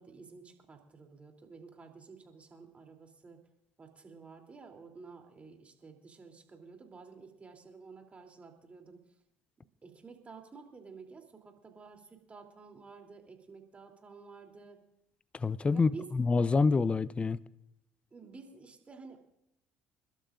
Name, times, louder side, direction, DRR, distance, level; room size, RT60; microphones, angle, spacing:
voice 1, 0.0-3.4 3.8-9.0 9.8-14.8 15.7-16.1 18.1-19.2, right 4 dB, 30° right, 3.3 m, -51 dB
voice 2, 15.3-17.4, left 4 dB, 25° left, 0.6 m, -27 dB
29.5 x 12.5 x 2.6 m
hypercardioid pair, 65°, 4 cm